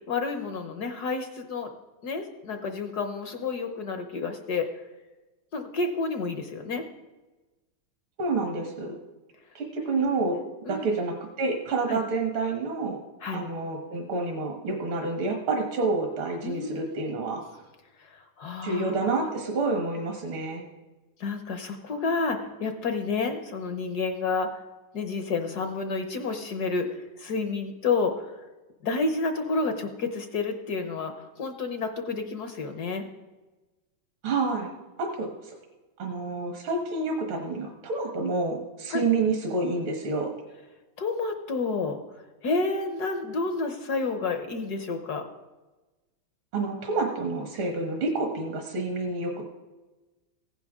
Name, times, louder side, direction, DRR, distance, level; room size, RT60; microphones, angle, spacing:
voice 1, 0.1-1.7 2.0-4.7 5.5-6.8 10.2-10.4 10.6-10.9 11.9-12.0 13.2-13.5 16.4-17.2 18.0-19.3 21.2-24.6 24.9-28.4 28.8-33.1 38.9-39.0 41.0-45.3, left 4 dB, 60° left, 7 dB, 1.2 m, -30 dB
voice 2, 8.2-9.0 9.5-10.4 10.7-13.0 13.3-17.4 18.6-20.6 34.2-34.7 35.0-35.5 36.0-40.3 46.5-49.4, right 3 dB, 70° right, 2 dB, 2.2 m, -28 dB
15.5 x 10.5 x 3.6 m, 1.2 s
omnidirectional pair, 2.3 m